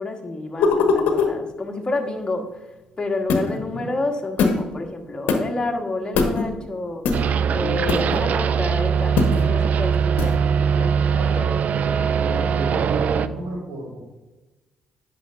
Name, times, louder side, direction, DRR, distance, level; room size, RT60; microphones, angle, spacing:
voice 1, 0.0-2.5 3.0-7.2 7.5-11.1, left 2 dB, 30° left, 3 dB, 1.4 m, -29 dB
sound 1, 0.6-1.3 3.3-3.6 4.4-4.6 5.3-5.4 6.2-6.5 7.0-7.2 7.9-8.2 9.2-9.5 10.2-10.4, left 4 dB, 70° left, 0.9 m, -20 dB
sound 2, 7.1-13.3, right 7 dB, 55° right, 0.3 m, -21 dB
voice 2, 11.1-14.0, right 1 dB, 75° right, -3 dB, 2.1 m, -33 dB
9.4 x 5.8 x 2.6 m, 1.1 s
hypercardioid pair, 50°, 3 cm